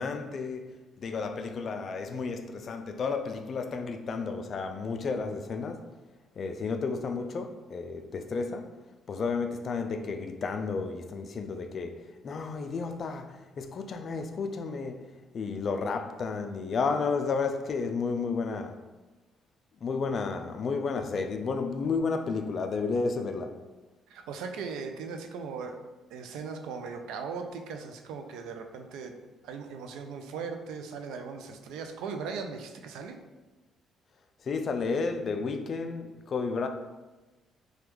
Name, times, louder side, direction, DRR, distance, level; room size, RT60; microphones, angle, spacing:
voice 1, 0.0-5.9 6.4-8.7 9.1-15.1 15.3-18.8 19.8-23.6 34.4-36.7, left 4 dB, 50° left, 0.3 m, -32 dB
voice 2, 24.1-25.8 26.1-29.1 29.4-33.2, right 5 dB, 85° right, 0.3 m, -38 dB
3.3 x 2.3 x 3.0 m
cardioid pair, 90°, 0 cm